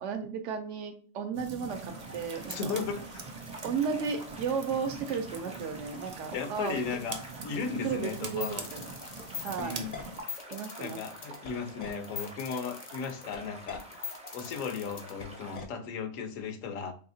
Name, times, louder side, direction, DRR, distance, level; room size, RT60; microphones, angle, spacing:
voice 1, 0.0-2.8 3.6-6.8 7.8-8.9 9.4-9.8 10.5-11.0, right 6 dB, 70° right, 7 dB, 0.8 m, -34 dB
sound 1, 1.3-10.2, right 4 dB, 85° right, 0.3 m, -43 dB
sound 2, 1.7-15.6, right 1 dB, 10° right, 0.4 m, -48 dB
voice 2, 2.5-3.0 6.3-8.6 9.6-10.0 10.8-13.8 14.3-16.9, left 5 dB, 75° left, 8 dB, 1.0 m, -36 dB
sound 3, 8.2-15.6, left 7 dB, 50° left, 0.7 m, -41 dB
4.2 x 2.8 x 2.6 m, 0.43 s
omnidirectional pair, 1.4 m